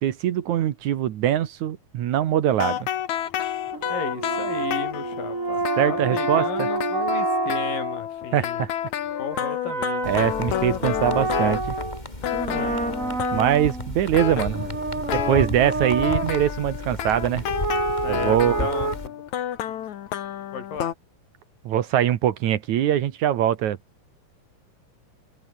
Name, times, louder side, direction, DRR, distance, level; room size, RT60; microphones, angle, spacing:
voice 1, 0.0-2.8 5.8-6.7 8.3-8.7 10.1-11.8 13.3-14.7 15.1-17.4 18.1-18.7 21.6-23.8, right 11 dB, 65° right, 2.5 m, -22 dB
sound 1, 2.5-12.0 12.2-13.7 14.1-15.5 16.0-20.9, left 11 dB, 65° left, 2.7 m, -30 dB
sound 2, 3.7-8.0 9.1-12.0 12.3-14.0 14.5-16.4 17.5-18.9, right 3 dB, 25° right, 3.3 m, -28 dB
voice 2, 3.9-8.6 9.2-10.2 12.5-12.8 18.0-19.2 20.5-20.9, left 6 dB, 85° left, 5.7 m, -34 dB
sound 3, 10.0-19.1, left 1 dB, 10° left, 4.9 m, -34 dB
omnidirectional pair, 3.8 m